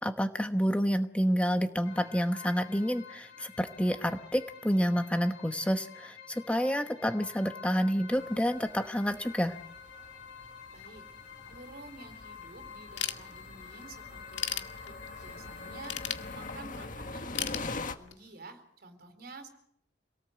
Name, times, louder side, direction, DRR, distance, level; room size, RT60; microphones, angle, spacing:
voice 1, 0.0-9.6, equal, 5° left, 7 dB, 1.0 m, -29 dB
sound 1, 1.8-16.6, left 6 dB, 65° left, 4.3 m, -49 dB
sound 2, 8.1-17.9, left 3 dB, 45° left, 1.6 m, -44 dB
voice 2, 10.7-11.0 11.5-14.9 15.2-16.0 16.3-19.5, right 3 dB, 55° right, 8 dB, 4.2 m, -50 dB
Ratchet pawl / Tools, 13.0-13.8 14.1-15.3 15.8-16.8 17.4-18.3, left 10 dB, 90° left, 1.8 m, -35 dB
26.5 x 18.5 x 8.1 m, 0.71 s
head